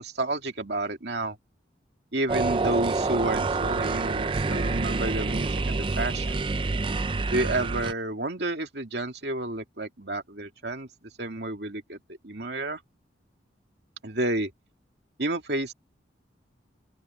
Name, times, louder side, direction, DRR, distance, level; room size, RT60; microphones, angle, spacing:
voice 1, 0.0-1.4 2.1-6.4 7.3-10.9 11.2-12.8 14.0-14.5 15.2-15.7, right 2 dB, 60° right, 2.8 m, -30 dB
sound 1, 2.3-7.9, right 3 dB, 25° right, 0.4 m, -27 dB
open air
head